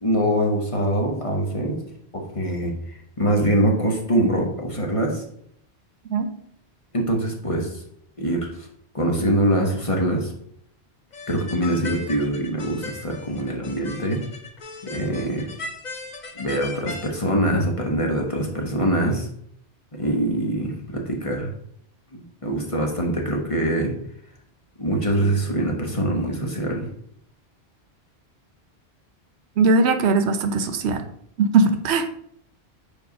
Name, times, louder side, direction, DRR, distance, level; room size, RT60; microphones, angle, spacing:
voice 1, 0.0-1.8 2.1-5.2 6.9-7.8 8.2-8.7 8.9-10.3 11.3-14.2 14.8-15.5 16.3-19.3 19.9-21.5 22.1-23.9 24.8-26.9, right 1 dB, 30° left, 0 dB, 1.3 m, -24 dB
sound 1, 11.1-17.1, left 3 dB, 45° left, 0.8 m, -37 dB
voice 2, 29.6-31.0 31.4-32.1, right 4 dB, 90° right, 9 dB, 1.0 m, -19 dB
5.3 x 4.4 x 5.2 m, 0.70 s
omnidirectional pair, 1.1 m